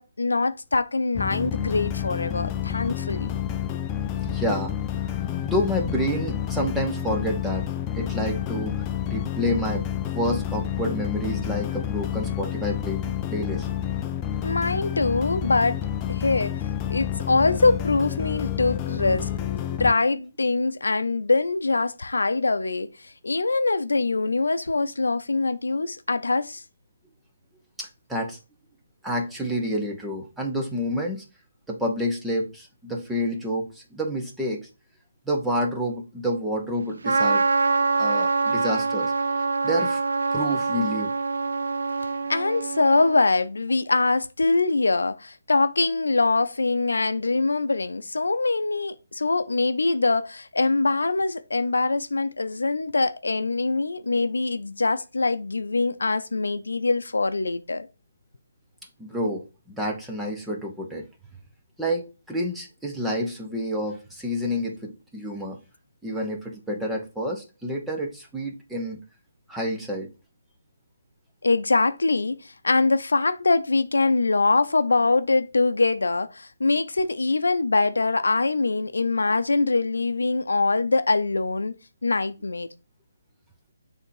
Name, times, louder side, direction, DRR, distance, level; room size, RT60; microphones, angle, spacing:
voice 1, 0.0-3.4 14.4-15.8 16.1-16.6 16.9-19.3 19.8-26.6 42.3-57.9 71.4-81.7 82.0-82.7, left 3 dB, 85° left, 0.6 m, -23 dB
sound 1, 1.1-19.9, left 10 dB, 20° left, 0.4 m, -29 dB
voice 2, 4.2-4.8 5.1-7.7 7.9-13.7 27.8-28.4 29.0-31.2 31.7-34.7 35.3-37.4 38.0-39.1 39.6-40.0 40.3-41.1 59.0-61.1 61.8-65.6 66.0-69.0 69.5-70.1, equal, 5° right, 0.9 m, -29 dB
Trumpet, 37.0-43.2, right 4 dB, 75° right, 0.6 m, -25 dB
6.5 x 3.5 x 4.7 m
hypercardioid pair, 160°, 0 cm